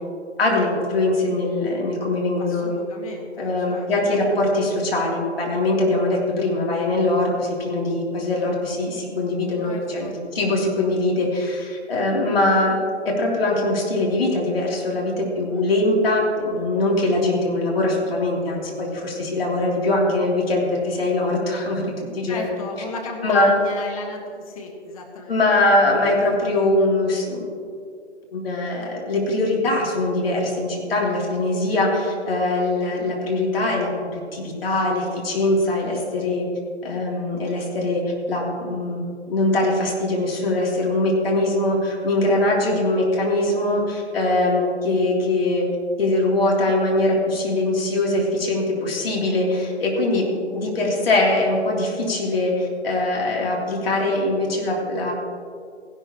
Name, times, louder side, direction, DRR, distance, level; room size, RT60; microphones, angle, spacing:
voice 1, 0.4-2.7 3.4-12.7 13.1-22.4 23.2-23.5 25.3-27.5 28.3-36.4 36.8-38.0 38.3-39.0 39.3-45.6 46.0-55.1, left 2 dB, 55° left, -3 dB, 3.2 m, -22 dB
voice 2, 2.4-4.2 9.6-10.2 15.5-15.9 22.2-25.7, left 3 dB, 30° left, 0 dB, 1.4 m, -35 dB
16.0 x 11.5 x 3.0 m, 2.2 s
figure-of-eight pair, 140°, 35 cm